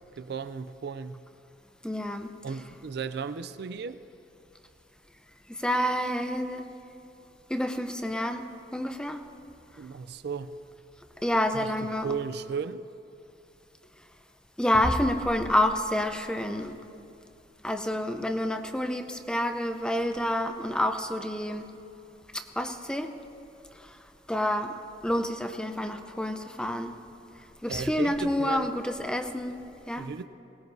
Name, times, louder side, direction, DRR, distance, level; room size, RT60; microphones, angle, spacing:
voice 1, 0.2-1.2 2.4-4.0 9.8-10.5 11.5-12.8 27.7-28.7 30.0-30.2, right 5 dB, 65° right, 12 dB, 0.4 m, -35 dB
voice 2, 1.8-2.3 5.5-6.7 7.5-9.2 11.2-12.1 14.6-16.7 17.6-21.7 22.3-23.1 24.3-24.8 25.0-26.9 27.6-29.6 29.9-30.1, left 1 dB, 5° left, 7 dB, 0.6 m, -28 dB
21.5 x 18.5 x 2.7 m, 2.7 s
head